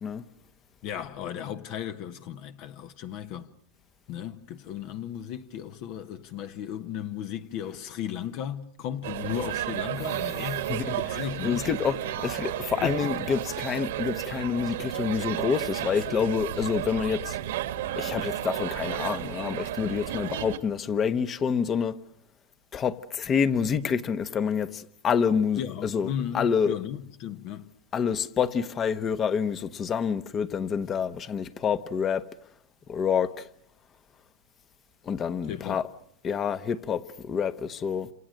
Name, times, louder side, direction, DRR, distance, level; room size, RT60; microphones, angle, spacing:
voice 1, 0.8-3.5 4.1-10.7 11.0-11.7 12.8-13.1 25.6-27.7 35.5-35.8, left 9 dB, 50° left, 1.3 m, -35 dB
sound 1, 9.0-20.6, right 12 dB, 80° right, 1.8 m, -33 dB
voice 2, 10.4-17.4 17.9-22.0 22.7-26.8 27.9-32.3 32.9-33.5 35.0-35.9 36.2-38.1, left 7 dB, 30° left, 1.1 m, -28 dB
sound 2, 15.7-20.2, right 7 dB, 60° right, 1.1 m, -47 dB
29.0 x 27.5 x 6.5 m
supercardioid pair, 125°, 0 cm